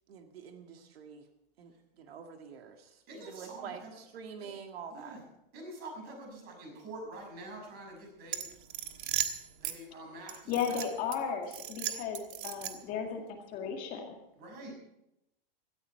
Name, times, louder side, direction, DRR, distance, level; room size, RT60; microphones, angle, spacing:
voice 1, 0.1-1.2 1.6-5.2, right 6 dB, 80° right, 5 dB, 1.9 m, -47 dB
voice 2, 3.1-3.9 4.9-5.2 5.5-8.5 9.6-10.8 14.3-14.7, right 2 dB, 30° right, 1 dB, 6.2 m, -46 dB
sound 1, 8.3-9.8 10.3-11.2 11.5-13.0, right 11 dB, 55° right, 1.5 m, -36 dB
voice 3, 10.5-13.2 13.5-14.2, left 7 dB, 30° left, 3 dB, 2.0 m, -35 dB
17.0 x 13.5 x 4.5 m, 0.86 s
supercardioid pair, 160°, 30 cm